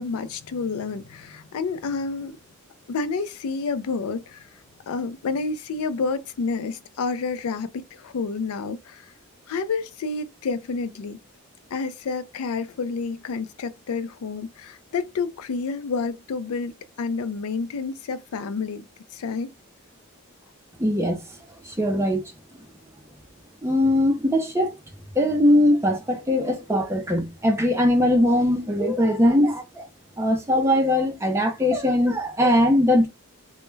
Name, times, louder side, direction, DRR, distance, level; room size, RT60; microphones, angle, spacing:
voice 1, 0.0-2.4 2.9-4.5 4.9-9.1 9.5-11.2 11.7-16.7 17.0-18.8 19.1-19.5, left 4 dB, 85° left, 0.4 m, -29 dB
voice 2, 20.8-21.2 21.6-22.2 23.6-24.7 25.2-29.9 30.2-33.1, left 1 dB, 10° right, 0.5 m, -20 dB
2.2 x 2.1 x 3.1 m
head